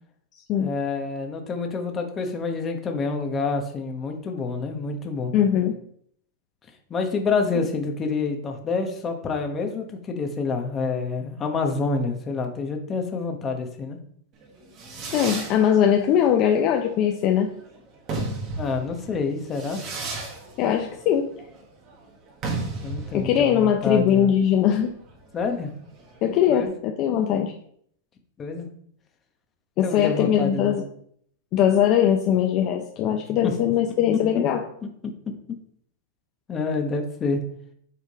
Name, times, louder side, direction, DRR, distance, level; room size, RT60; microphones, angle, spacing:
voice 1, 0.6-5.3 6.9-14.0 18.6-19.8 22.8-24.3 25.3-25.7 26.5-26.7 28.4-28.7 29.8-30.8 33.4-33.6 36.5-37.4, left 4 dB, 20° left, 4 dB, 1.1 m, -27 dB
voice 2, 5.3-5.7 15.1-17.5 20.6-21.3 23.1-24.9 26.2-27.5 29.8-30.8 31.5-34.6, left 9 dB, 35° left, 3 dB, 0.7 m, -21 dB
Fireworks, 14.4-26.6, right 3 dB, 35° right, 1.5 m, -35 dB
8.3 x 3.7 x 4.8 m, 0.65 s
supercardioid pair, 155°, 0 cm